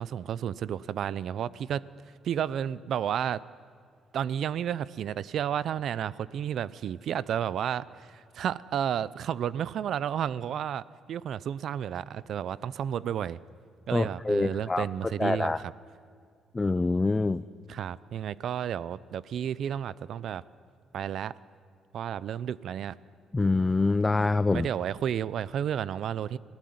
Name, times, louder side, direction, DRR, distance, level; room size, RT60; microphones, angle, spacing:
voice 1, 0.0-1.8 2.2-3.4 4.1-13.4 13.9-15.7 17.7-20.4 20.9-21.3 21.9-23.0 24.5-26.4, right 9 dB, 70° right, 19 dB, 0.6 m, -32 dB
voice 2, 13.9-15.6 16.5-17.4 23.3-24.7, left 3 dB, 20° left, 15 dB, 0.5 m, -26 dB
25.5 x 16.0 x 9.5 m, 2.2 s
cardioid pair, 90°, 0 cm